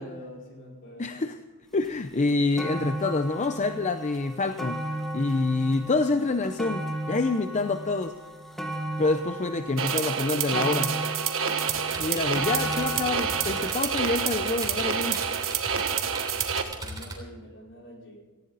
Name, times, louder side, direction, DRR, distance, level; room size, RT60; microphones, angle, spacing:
voice 1, 0.0-1.2 16.8-18.2, equal, 55° left, -1 dB, 4.8 m, -45 dB
voice 2, 1.0-1.4 1.7-4.8 5.1-8.1 9.0-11.0 12.0-15.3, left 3 dB, 30° left, 9 dB, 0.6 m, -27 dB
sound 1, 1.8-1.9 2.3-15.5 16.2-16.3, right 1 dB, ahead, 1.4 m, -36 dB
sound 2, 9.8-16.6, right 7 dB, 65° right, 1.4 m, -28 dB
sound 3, 11.7-17.2, right 2 dB, 20° right, 3.4 m, -38 dB
18.0 x 15.5 x 4.0 m, 1.3 s
head